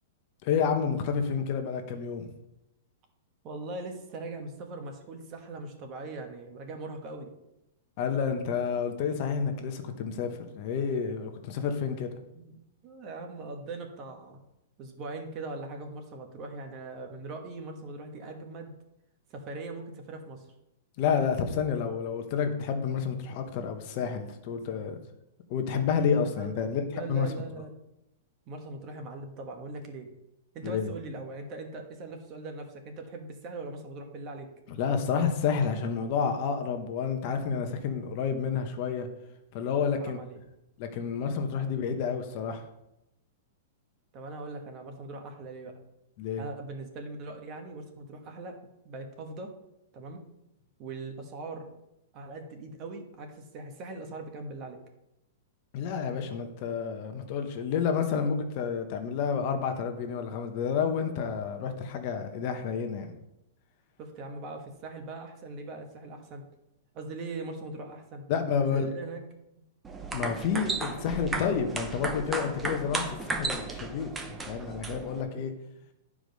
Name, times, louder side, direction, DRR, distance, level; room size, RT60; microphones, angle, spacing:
voice 1, 0.4-2.2 8.0-12.1 21.0-25.0 25.5-27.3 30.6-30.9 34.7-39.1 39.5-40.2 40.8-42.6 46.2-46.4 55.7-63.1 68.3-68.9 70.1-75.5, left 6 dB, 40° left, 6 dB, 1.0 m, -30 dB
voice 2, 3.4-7.3 12.3-14.4 14.8-18.7 19.3-20.5 26.3-27.7 28.5-30.1 30.5-34.5 39.8-40.4 41.6-41.7 44.1-45.8 46.4-48.6 48.8-49.5 49.9-50.2 50.8-51.7 52.1-54.8 64.0-66.5 66.9-68.2 68.7-69.2 70.5-71.0 75.3-75.4, right 2 dB, 30° right, 4 dB, 1.2 m, -41 dB
sound 1, 69.8-75.2, right 3 dB, 10° right, 0.7 m, -34 dB
9.9 x 4.9 x 5.3 m, 0.86 s
supercardioid pair, 160°, 0 cm